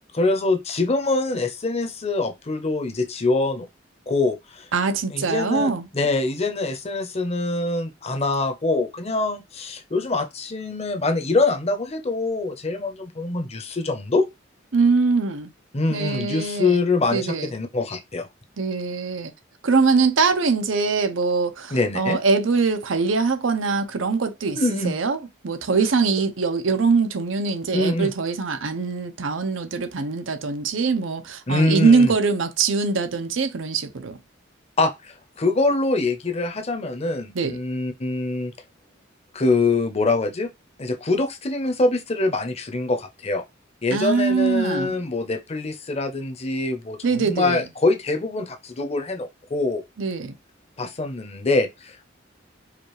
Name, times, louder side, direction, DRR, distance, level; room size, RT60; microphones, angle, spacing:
voice 1, 0.1-3.7 4.1-4.7 5.1-14.3 15.7-18.3 21.7-22.2 24.6-24.9 27.7-28.1 31.5-32.1 34.8-38.5 39.3-40.5 40.8-43.4 43.8-49.8 50.8-52.1, left 3 dB, 35° left, 0.8 m, -24 dB
voice 2, 4.7-5.9 14.7-15.5 15.9-16.8 17.1-17.5 18.6-19.3 19.6-25.2 25.4-34.2 37.3-37.6 43.9-44.9 47.0-47.6 50.0-50.4, right 4 dB, 85° right, 0.7 m, -22 dB
4.9 x 2.4 x 3.1 m
head